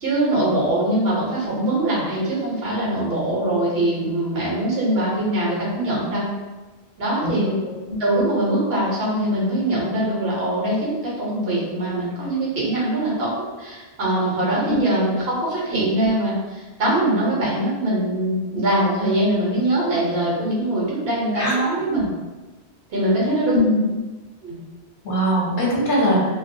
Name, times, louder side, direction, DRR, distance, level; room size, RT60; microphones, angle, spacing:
voice 1, 0.0-6.3 7.0-7.6 8.0-13.3 13.6-22.1 22.9-23.7 24.4-24.6, right 1 dB, 70° right, -5 dB, 1.0 m, -22 dB
voice 2, 23.2-23.8 25.0-26.2, left 1 dB, 60° left, -5 dB, 0.8 m, -21 dB
2.4 x 2.1 x 2.6 m, 1.2 s
omnidirectional pair, 1.1 m